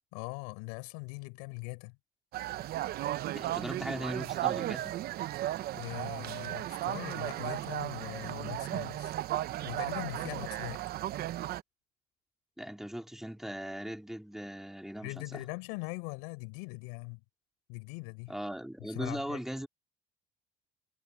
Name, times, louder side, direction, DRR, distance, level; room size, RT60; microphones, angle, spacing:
voice 1, 0.1-2.0 5.7-9.1 9.6-10.8 15.0-17.2 17.7-18.3 18.9-19.4, left 31 dB, 90° left, 5.0 m, -41 dB
sound 1, 2.3-11.6, right 14 dB, 65° right, 0.9 m, -35 dB
voice 2, 3.3-5.0 12.6-15.4 18.3-19.7, equal, ahead, 3.3 m, -39 dB
supercardioid pair, 70°, 17 cm